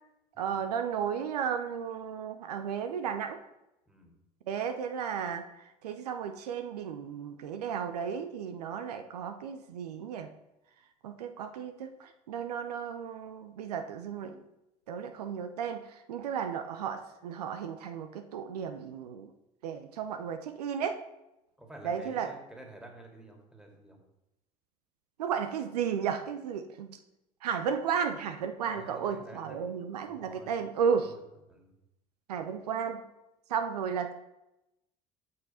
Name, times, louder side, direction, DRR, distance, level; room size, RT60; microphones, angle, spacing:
voice 1, 0.4-3.4 4.5-5.4 5.8-10.3 11.0-14.4 14.9-19.3 19.6-21.0 21.8-22.3 25.2-27.0 27.4-31.1 32.3-33.0 33.5-34.1, right 7 dB, 80° right, 7 dB, 0.6 m, -34 dB
voice 2, 21.6-24.0 28.7-29.7 30.0-30.5 31.0-31.2 31.5-31.7, right 2 dB, 5° right, 1 dB, 2.3 m, -50 dB
7.5 x 6.1 x 4.2 m, 0.89 s
figure-of-eight pair, 65°, 20 cm